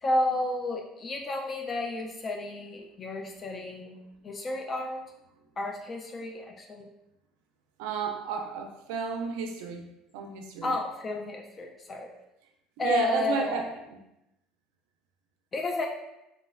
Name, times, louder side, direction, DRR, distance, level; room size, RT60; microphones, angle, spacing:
voice 1, 0.0-4.0 4.2-5.0 5.6-6.9 10.6-12.1 12.8-13.7 15.5-15.9, left 2 dB, 30° left, 1 dB, 0.3 m, -31 dB
voice 2, 7.8-9.9 10.1-10.8 12.8-13.7, right 5 dB, 85° right, 4 dB, 0.3 m, -32 dB
3.1 x 2.0 x 2.3 m, 0.88 s
supercardioid pair, 110°, 0 cm